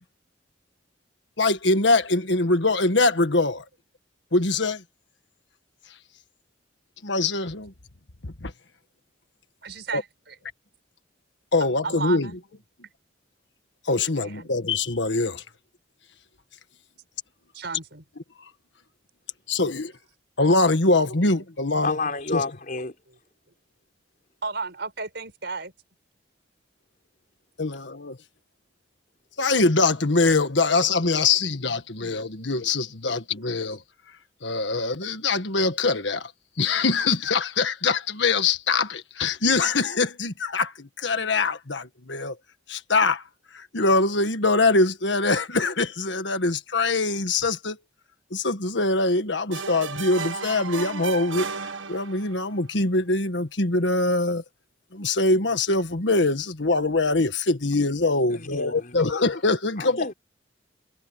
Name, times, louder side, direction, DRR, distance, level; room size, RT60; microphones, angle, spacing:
voice 1, 1.4-3.6 4.3-4.8 7.0-7.7 8.2-8.5 9.9-10.0 11.5-12.3 13.8-15.4 19.5-19.9 20.4-22.0 22.3-22.4 27.6-28.2 29.4-33.8 34.4-36.3 36.6-42.4 42.7-43.2 43.5-47.8 48.3-54.4 54.9-60.1, left 3 dB, 70° left, 1.6 m, -23 dB
voice 2, 9.6-10.4 11.6-12.4 14.2-14.5 17.5-18.0 21.7-21.8 24.4-25.7 32.4-32.5, right 4 dB, 60° right, 6.4 m, -34 dB
voice 3, 21.8-22.9 58.3-59.0 59.8-60.1, left 3 dB, 45° left, 5.2 m, -30 dB
sound 1, 49.5-52.5, right 5 dB, 90° right, 1.9 m, -34 dB
head